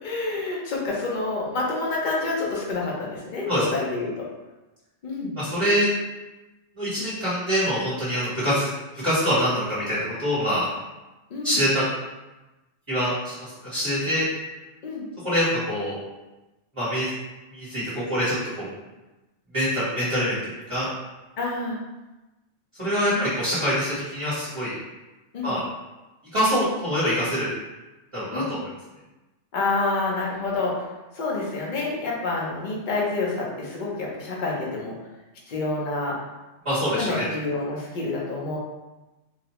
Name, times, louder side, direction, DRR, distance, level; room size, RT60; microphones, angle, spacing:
voice 1, 0.0-4.2 5.0-5.3 11.3-11.6 14.8-15.1 21.4-21.8 23.1-23.3 25.3-25.6 28.3-28.5 29.5-30.9 31.1-34.9 35.5-36.2 36.9-38.6, left 3 dB, 45° left, -3 dB, 0.8 m, -28 dB
voice 2, 5.4-5.9 6.8-8.7 8.9-10.6 11.4-11.8 12.9-13.4 13.6-14.3 15.2-15.9 16.8-17.1 17.5-18.7 19.5-20.9 22.8-24.7 25.4-25.6 26.3-27.5 28.1-28.4 36.6-37.3, equal, 25° right, -12 dB, 1.1 m, -24 dB
4.0 x 2.2 x 2.9 m, 1.1 s
omnidirectional pair, 1.3 m